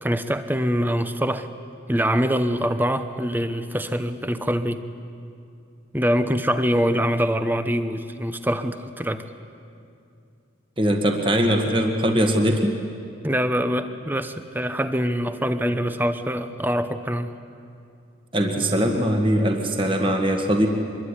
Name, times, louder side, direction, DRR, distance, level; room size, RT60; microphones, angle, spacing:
voice 1, 0.0-1.5 1.9-4.8 5.9-9.2 13.2-17.3, equal, 10° right, 10 dB, 0.9 m, -24 dB
voice 2, 10.8-12.8 18.3-20.7, equal, 25° right, 3 dB, 1.8 m, -21 dB
25.0 x 22.0 x 9.9 m, 2.5 s
head